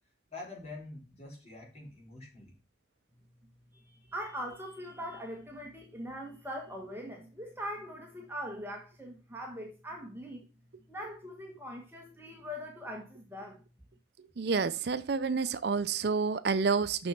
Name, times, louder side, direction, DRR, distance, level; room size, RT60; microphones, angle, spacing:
voice 1, 0.3-2.5, left 2 dB, 35° left, 4.5 m, -46 dB
voice 2, 3.7-10.4 10.9-13.6, equal, 10° right, 1.4 m, -41 dB
voice 3, 14.4-17.1, right 5 dB, 60° right, 0.5 m, -29 dB
6.9 x 6.3 x 5.8 m
head